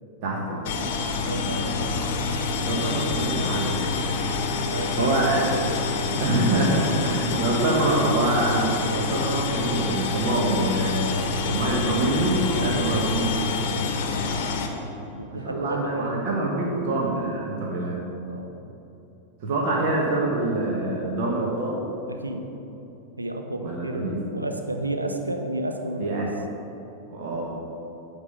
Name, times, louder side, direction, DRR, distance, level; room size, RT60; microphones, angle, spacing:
voice 1, 0.2-0.8 2.6-3.8 5.0-5.4 6.2-13.3 15.4-18.0 19.4-21.8 23.6-24.2 26.0-26.3 27.1-27.5, right 2 dB, 45° right, -3 dB, 1.3 m, -25 dB
sound 1, 0.6-14.7, left 4 dB, 50° left, 0.9 m, -27 dB
voice 2, 1.3-2.0 3.9-4.1 4.6-5.7 6.1-6.2 12.5-14.2 15.1-16.8 18.3-18.5 22.1-22.4 23.2-26.3, right 1 dB, 80° right, 5 dB, 0.6 m, -32 dB
9.6 x 3.7 x 6.5 m, 3.0 s
figure-of-eight pair, 90°, 0 cm